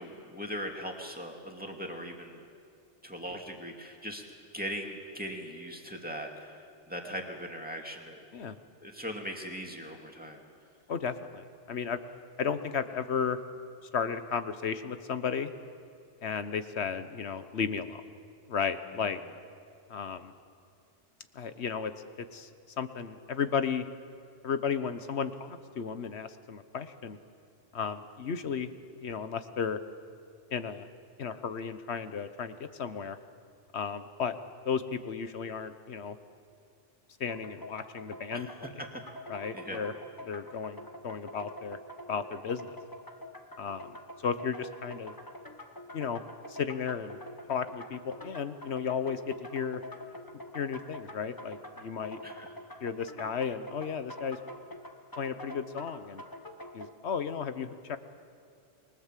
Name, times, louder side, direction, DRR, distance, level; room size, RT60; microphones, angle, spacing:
voice 1, 0.0-2.4 3.0-4.2 4.5-8.2 8.8-10.4 38.3-39.0 39.5-39.8 52.2-52.5, equal, 5° right, 1 dB, 2.5 m, -40 dB
voice 2, 10.9-12.0 12.4-13.4 13.9-15.5 16.2-18.0 18.5-19.2 19.9-20.3 21.3-21.9 22.2-22.5 22.8-23.8 24.4-27.2 27.7-28.7 29.0-29.8 30.5-30.9 31.2-33.2 33.7-34.4 34.6-36.2 37.2-38.5 39.3-39.9 40.2-41.8 42.1-42.8 43.6-43.9 44.2-45.1 45.9-46.2 46.5-47.2 47.5-49.8 50.5-52.2 52.8-54.4 55.2-56.2 56.7-58.0, left 6 dB, 70° left, 11 dB, 1.3 m, -34 dB
sound 1, 37.3-56.9, equal, 20° left, 1.4 m, -46 dB
28.0 x 22.0 x 7.5 m, 2.5 s
omnidirectional pair, 1.2 m